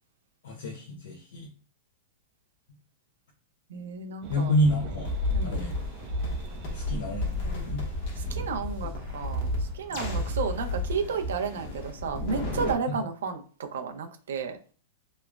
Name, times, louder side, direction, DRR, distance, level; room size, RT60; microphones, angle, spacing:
voice 1, 0.4-1.5 4.3-5.1 5.4-5.7 6.7-7.8 9.9-10.2 12.9-13.0, equal, 80° left, 0.8 m, -29 dB
voice 2, 3.7-4.5 5.3-5.6 8.2-14.6, right 5 dB, 85° right, 0.6 m, -33 dB
sound 1, 4.2-10.7, right 3 dB, 35° right, 0.5 m, -44 dB
sound 2, 4.9-12.7, left 1 dB, 50° left, 0.9 m, -32 dB
3.1 x 2.0 x 2.4 m
supercardioid pair, 155°, 0 cm